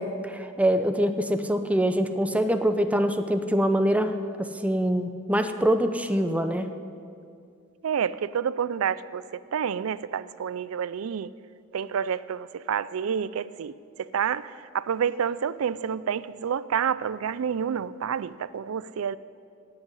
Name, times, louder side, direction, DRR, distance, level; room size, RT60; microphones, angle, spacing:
voice 1, 0.0-6.7, equal, 5° right, 8 dB, 0.6 m, -24 dB
voice 2, 7.8-9.2 9.5-11.3 11.7-19.2, right 7 dB, 85° right, 18 dB, 0.4 m, -29 dB
17.0 x 6.5 x 9.8 m, 2.4 s
head